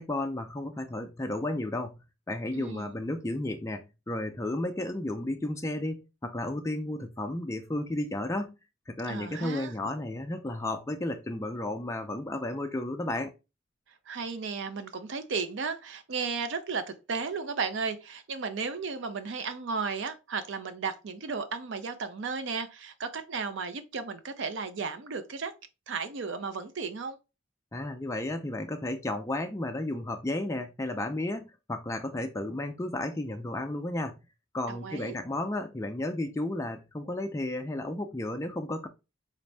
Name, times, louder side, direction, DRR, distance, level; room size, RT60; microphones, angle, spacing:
voice 1, 0.0-2.0 2.3-8.5 8.9-13.3 27.7-34.2 34.5-38.9, left 1 dB, 15° left, 0.4 m, -33 dB
voice 2, 2.5-2.9 9.0-9.7 14.1-25.5 25.9-27.2 34.7-35.2, right 5 dB, 65° right, 0.5 m, -34 dB
4.0 x 2.6 x 3.3 m
head